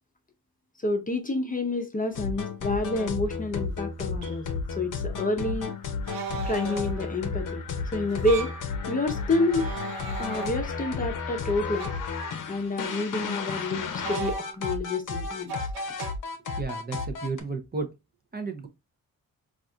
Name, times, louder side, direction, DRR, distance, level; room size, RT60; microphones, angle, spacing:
voice 1, 0.8-4.4 4.7-5.7 6.5-7.6 7.9-8.5 8.9-9.6 10.2-11.9 12.5-15.6, left 2 dB, 25° left, 0.6 m, -28 dB
sound 1, 2.2-17.4, left 5 dB, 60° left, 0.7 m, -33 dB
sound 2, 3.3-3.4 4.2-4.4 6.1-7.1 8.1-8.7 9.4-10.9 11.8-12.1 14.0-14.8 15.5-16.1, right 4 dB, 75° right, 0.7 m, -37 dB
voice 2, 16.6-17.9 18.3-18.7, right 4 dB, 25° right, 0.6 m, -32 dB
4.1 x 2.5 x 2.4 m
cardioid pair, 80°, 36 cm